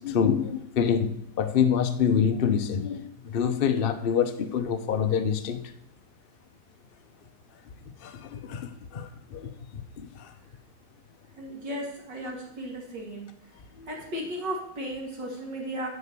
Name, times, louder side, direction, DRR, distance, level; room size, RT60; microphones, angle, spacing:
voice 1, 0.0-5.6 8.0-10.3 13.8-13.9, left 7 dB, 60° left, 0.5 m, -26 dB
voice 2, 11.3-13.3 13.9-15.9, equal, 65° right, 2.5 m, -35 dB
9.7 x 5.3 x 8.2 m
omnidirectional pair, 2.1 m